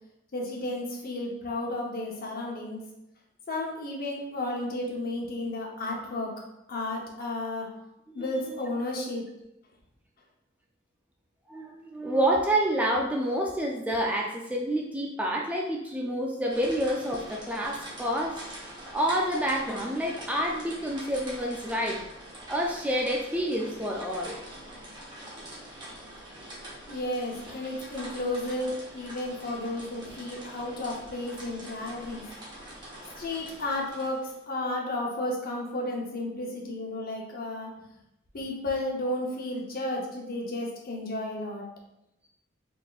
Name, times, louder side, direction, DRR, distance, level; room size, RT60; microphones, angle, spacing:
voice 1, 0.3-2.8 3.5-6.3 6.7-7.7 8.1-9.3 26.9-32.2 33.2-37.7 38.3-41.6, left 1 dB, 50° left, -1 dB, 0.8 m, -33 dB
voice 2, 11.5-18.4 18.9-22.0 22.5-24.4, right 1 dB, 5° right, -1 dB, 0.3 m, -28 dB
sound 1, 16.5-34.4, right 1 dB, 25° right, 1.1 m, -44 dB
4.0 x 3.5 x 2.4 m, 0.86 s
head